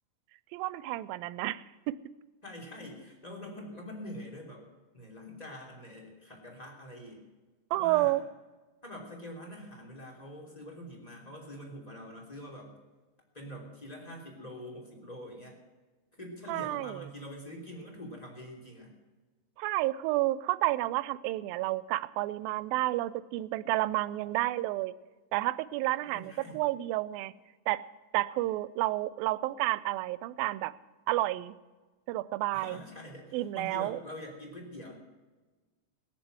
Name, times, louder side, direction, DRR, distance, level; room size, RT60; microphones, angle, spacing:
voice 1, 0.5-2.0 7.7-8.2 16.5-17.0 19.6-24.9 25.3-27.3 27.7-27.8 28.1-30.7 31.1-31.6 32.1-32.8 33.3-34.0, right 17 dB, 90° right, 17 dB, 2.4 m, -30 dB
voice 2, 2.4-4.6 4.9-7.2 7.7-8.2 8.8-12.7 13.3-15.6 16.1-18.9 26.0-26.6 32.5-35.0, equal, 10° left, -1 dB, 2.9 m, -45 dB
20.0 x 7.2 x 7.8 m, 1.2 s
omnidirectional pair, 4.1 m